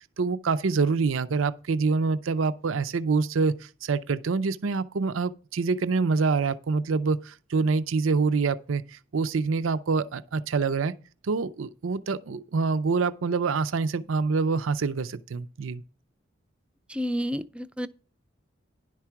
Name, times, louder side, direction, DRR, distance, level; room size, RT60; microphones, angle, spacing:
voice 1, 0.2-10.9 11.2-15.8, right 4 dB, 85° right, 0.5 m, -26 dB
voice 2, 16.9-17.9, equal, 5° right, 0.4 m, -30 dB
10.5 x 4.7 x 5.8 m
head